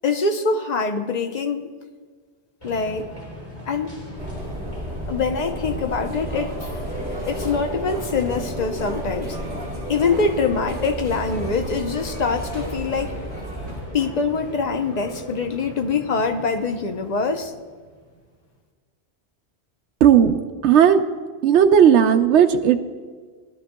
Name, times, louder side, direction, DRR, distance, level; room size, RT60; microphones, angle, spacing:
voice 1, 0.0-1.7 2.6-3.1 3.7-3.9 5.1-6.7 7.2-9.4 9.9-13.2 13.9-17.5, left 4 dB, 45° left, 6 dB, 0.7 m, -24 dB
sound 1, 2.6-18.4, right 1 dB, 25° left, 2.4 m, -38 dB
sound 2, 4.2-13.8, equal, 5° right, 3.8 m, -32 dB
voice 2, 20.0-20.4 20.6-21.0 21.4-22.8, right 8 dB, 80° right, 6 dB, 0.9 m, -14 dB
18.5 x 12.0 x 2.2 m, 1.5 s
omnidirectional pair, 1.2 m